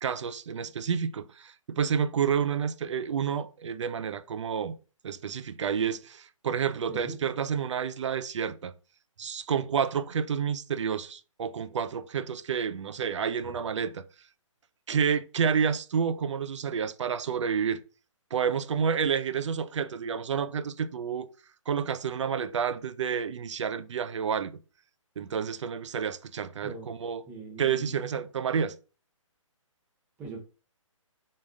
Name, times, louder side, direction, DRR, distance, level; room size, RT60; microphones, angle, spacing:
voice 1, 0.0-4.8 5.0-8.7 9.2-14.1 14.9-17.8 18.3-21.3 21.7-24.6 25.2-27.2 27.6-28.8, right 7 dB, 60° right, 0.4 m, -29 dB
voice 2, 27.3-28.0 30.2-30.4, right 3 dB, 10° right, 0.6 m, -40 dB
3.7 x 2.5 x 3.5 m
hypercardioid pair, 165°, 17 cm